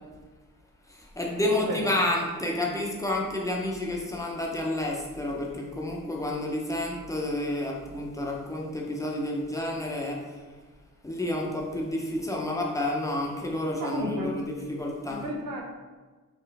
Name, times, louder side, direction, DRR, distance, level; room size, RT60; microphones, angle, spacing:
voice 1, 0.9-10.4 11.0-15.3, left 1 dB, 10° left, -2 dB, 0.8 m, -30 dB
voice 2, 1.4-1.9 13.8-14.4 15.1-15.6, equal, 75° right, -2 dB, 1.0 m, -32 dB
4.6 x 3.1 x 3.4 m, 1.3 s
wide cardioid pair, 100°, 33 cm